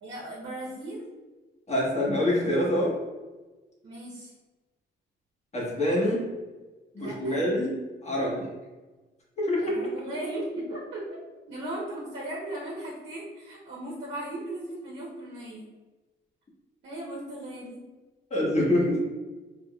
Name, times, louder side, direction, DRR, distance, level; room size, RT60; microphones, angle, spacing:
voice 1, 0.0-1.1 3.8-4.3 7.0-7.4 9.6-11.2 11.5-15.7 16.8-17.8, right 1 dB, 65° right, -6 dB, 1.1 m, -37 dB
voice 2, 1.7-2.9 5.5-6.2 6.9-7.7 8.0-8.5 9.4-9.7 18.3-19.0, left 1 dB, 35° left, -5 dB, 1.3 m, -25 dB
3.5 x 3.5 x 2.4 m, 1.2 s
cardioid pair, 90°, 20 cm